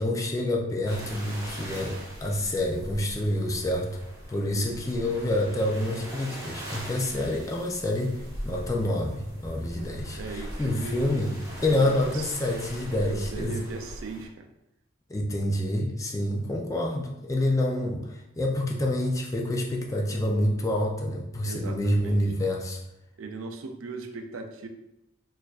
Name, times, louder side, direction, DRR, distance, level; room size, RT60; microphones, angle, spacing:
voice 1, 0.0-3.9 4.3-11.4 11.6-13.6 15.1-22.8, left 1 dB, 15° left, -1 dB, 0.4 m, -27 dB
sound 1, 0.8-14.3, equal, 15° right, 0.8 m, -41 dB
voice 2, 10.2-11.0 11.7-12.3 13.0-14.5 21.4-22.2 23.2-24.7, right 4 dB, 70° right, 5 dB, 0.4 m, -38 dB
4.3 x 2.5 x 2.4 m, 0.89 s
head